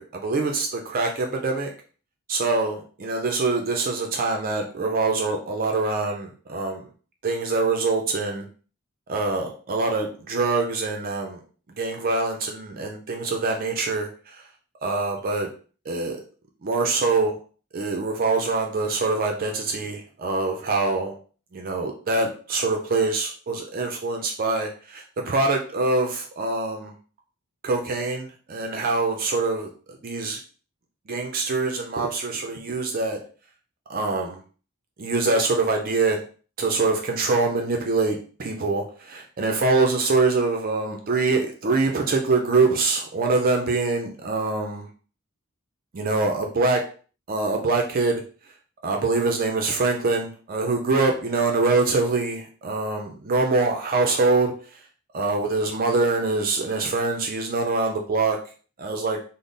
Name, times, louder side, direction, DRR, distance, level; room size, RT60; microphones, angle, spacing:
voice 1, 0.0-1.7 2.3-6.8 7.2-8.5 9.1-11.4 11.8-14.4 14.8-15.5 15.9-16.2 16.6-17.4 17.7-21.1 21.5-26.9 27.6-29.7 30.0-30.4 31.1-33.2 33.9-34.4 35.0-36.2 36.6-44.9 45.9-46.8 47.3-48.2 48.8-54.5 55.1-58.4 58.8-59.2, right 3 dB, 45° right, 2 dB, 0.5 m, -24 dB
3.6 x 2.0 x 3.8 m, 0.39 s
head